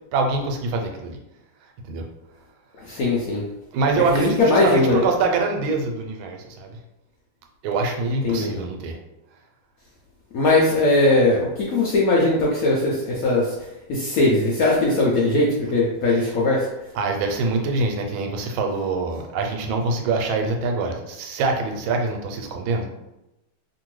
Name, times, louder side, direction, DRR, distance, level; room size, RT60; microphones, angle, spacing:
voice 1, 0.1-1.2 1.9-2.0 3.7-6.8 7.6-9.0 16.1-16.3 16.9-22.9, right 3 dB, 90° right, 3 dB, 1.4 m, -24 dB
voice 2, 2.9-3.4 4.1-5.0 8.2-8.6 10.3-13.5 13.9-16.7, left 2 dB, 80° left, -4 dB, 0.8 m, -19 dB
2.9 x 2.6 x 3.0 m, 0.92 s
omnidirectional pair, 2.1 m